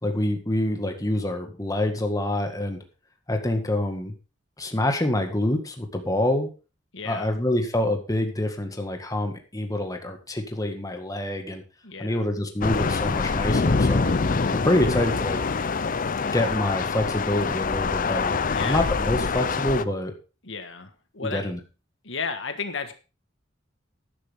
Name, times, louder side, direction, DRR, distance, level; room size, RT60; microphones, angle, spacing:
voice 1, 0.0-2.8 3.3-4.1 4.6-6.5 7.0-11.6 12.0-14.1 14.5-15.4 16.3-20.1 21.2-21.6, left 1 dB, 20° left, 4 dB, 1.8 m, -26 dB
voice 2, 6.9-7.3 11.8-12.2 18.5-18.8 20.4-21.4 22.0-22.9, left 5 dB, 70° left, 8 dB, 1.5 m, -33 dB
sound 1, 12.6-19.8, left 4 dB, 45° left, 0.6 m, -25 dB
13.0 x 10.5 x 3.6 m, 0.32 s
head